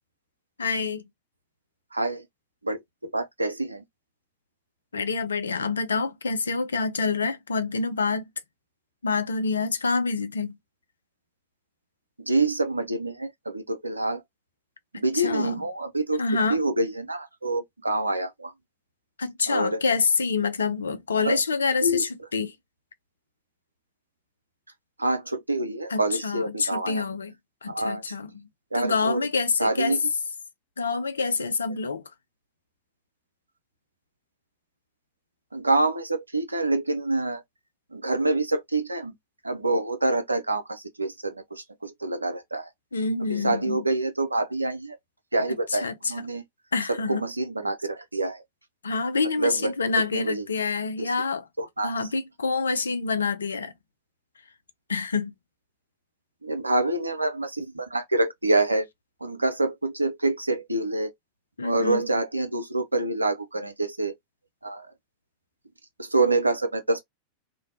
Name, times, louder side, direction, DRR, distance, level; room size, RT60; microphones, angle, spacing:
voice 1, 0.6-1.0 4.9-8.3 9.0-10.6 14.9-15.6 16.2-16.6 19.2-22.5 25.9-27.3 27.6-28.5 28.7-30.0 30.8-32.0 42.9-43.8 45.7-46.0 46.7-47.2 48.8-51.5 51.8-53.7 54.9-55.3 61.6-62.1, left 4 dB, 70° left, 0.4 m, -27 dB
voice 2, 1.9-2.3 2.6-3.8 12.2-14.2 14.9-16.2 16.5-18.5 19.5-19.8 21.2-21.4 21.8-22.1 25.0-27.0 27.7-28.0 28.7-29.2 29.6-30.0 35.5-37.4 37.9-39.1 39.4-42.7 43.3-45.0 45.3-46.4 46.9-48.4 49.4-49.7 50.1-50.4 51.0-51.1 51.6-52.1 56.4-58.9 59.2-61.1 61.6-64.1 64.6-64.9 66.0-67.0, right 2 dB, 80° right, 0.5 m, -26 dB
2.5 x 2.1 x 2.6 m
figure-of-eight pair, 90°, 0 cm